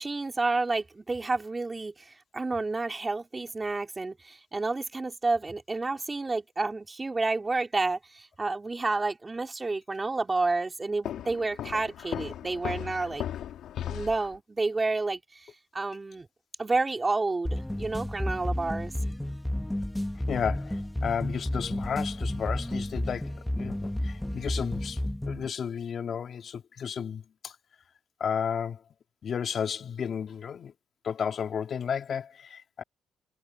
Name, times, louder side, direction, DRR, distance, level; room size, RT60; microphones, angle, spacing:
voice 1, 0.0-13.2 13.8-16.3 16.6-18.9, right 3 dB, 25° right, 3.4 m, -30 dB
Walk footsteps, 11.0-14.4, left 11 dB, 75° left, 3.0 m, -37 dB
sound 1, 17.4-25.5, left 1 dB, 5° left, 1.4 m, -32 dB
voice 2, 20.3-27.6 28.2-28.8 29.2-30.7 31.0-32.8, left 7 dB, 55° left, 2.8 m, -33 dB
cardioid pair, 90°, 0 cm